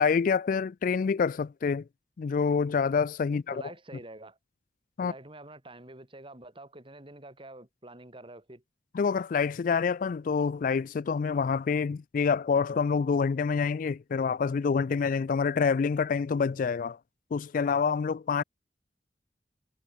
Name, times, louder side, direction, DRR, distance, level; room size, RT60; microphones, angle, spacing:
voice 1, 0.0-1.8 2.2-3.6 5.0-5.1 8.9-17.0 17.3-18.4, left 5 dB, 50° left, 0.3 m, -27 dB
voice 2, 3.5-4.4 5.0-8.6, right 2 dB, 30° right, 3.5 m, -47 dB
head